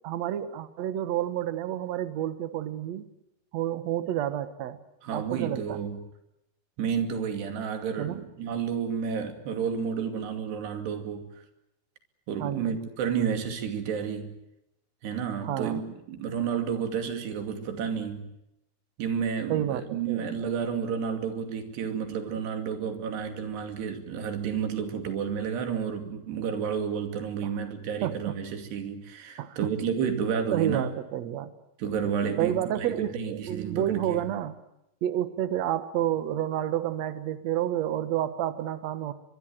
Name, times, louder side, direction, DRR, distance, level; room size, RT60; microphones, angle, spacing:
voice 1, 0.0-3.1 3.5-4.8 5.1-5.8 8.0-8.2 12.4-12.8 15.4-15.8 19.5-20.3 27.4-27.5 28.0-28.3 29.4-29.7 30.5-31.5 32.4-34.6 35.0-39.1, right 11 dB, 60° right, 12 dB, 1.9 m, -30 dB
voice 2, 5.0-6.0 6.8-11.4 12.3-14.3 15.0-15.8 16.1-18.2 19.0-30.9 31.8-34.2, right 7 dB, 80° right, 7 dB, 4.7 m, -31 dB
24.0 x 22.5 x 9.0 m, 0.84 s
omnidirectional pair, 4.7 m